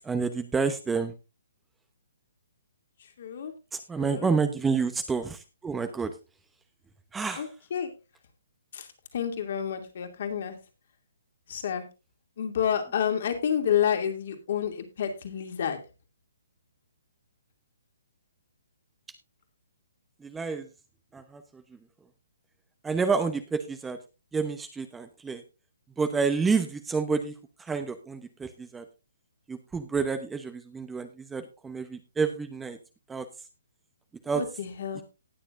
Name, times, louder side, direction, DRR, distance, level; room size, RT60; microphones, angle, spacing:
voice 1, 0.0-1.1 3.9-6.1 7.1-7.4 20.2-20.7 21.1-21.4 22.8-24.0 24.3-25.4 26.0-27.3 27.7-28.8 29.5-32.8 33.1-33.3 34.3-34.4 35.0-35.1, right 5 dB, 10° right, 8 dB, 0.9 m, -29 dB
voice 2, 3.2-3.5 4.0-4.3 7.4-7.9 8.7-8.9 9.1-10.6 11.5-11.8 12.4-15.8 34.3-35.0, left 8 dB, 55° left, 6 dB, 2.6 m, -29 dB
19.0 x 7.0 x 2.6 m, 0.28 s
hypercardioid pair, 145°, 0 cm